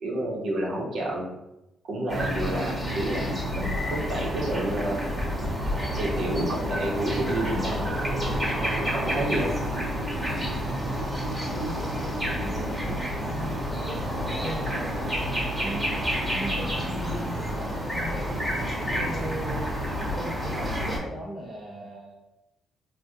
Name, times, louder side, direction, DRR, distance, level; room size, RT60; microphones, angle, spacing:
voice 1, 0.0-1.3 1.9-5.1 6.0-7.9 8.9-9.5, right 1 dB, 65° right, -3 dB, 0.8 m, -29 dB
sound 1, 2.1-21.0, equal, 5° right, 1.0 m, -29 dB
voice 2, 10.3-11.0 11.5-14.0 14.4-15.9 16.3-19.7 20.0-22.2, equal, 25° right, -2 dB, 0.6 m, -38 dB
3.4 x 2.2 x 2.7 m, 0.92 s
cardioid pair, 90°, 0 cm